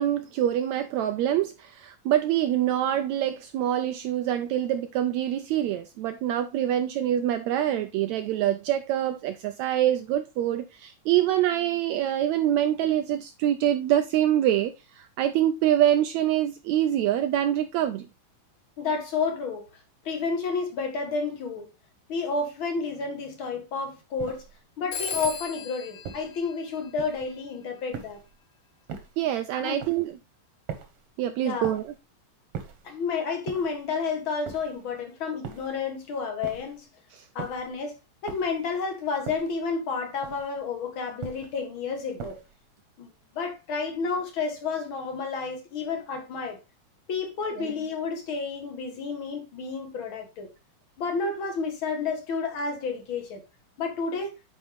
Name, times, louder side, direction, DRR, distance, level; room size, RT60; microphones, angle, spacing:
voice 1, 0.0-18.1 29.2-30.2 31.2-31.9 37.1-37.2 47.6-47.7, right 11 dB, 90° right, 1.6 m, -25 dB
voice 2, 18.8-19.6 20.0-21.7 22.1-24.4 24.8-28.2 29.6-29.8 31.4-31.7 32.8-36.9 37.3-37.9 38.2-42.4 43.0-43.1 43.3-46.6 47.1-50.5 51.0-53.4 53.8-54.3, left 4 dB, 50° left, 1.6 m, -30 dB
sound 1, 24.2-24.6 25.1-25.5 26.0-26.4 27.0-27.4 27.9-28.4 28.9-29.3 29.8-30.1 30.7-31.1 31.6-32.0 32.5-32.9 33.5-33.9 34.4-34.9 35.4-35.8 36.4-36.8 37.4-37.7 38.3-38.7 39.3-39.7 40.2-40.6 41.2-41.6 42.2-42.6, right 7 dB, 60° right, 1.8 m, -41 dB
Telephone, 24.9-27.4, left 5 dB, 75° left, 2.9 m, -37 dB
9.3 x 4.7 x 3.4 m
omnidirectional pair, 3.8 m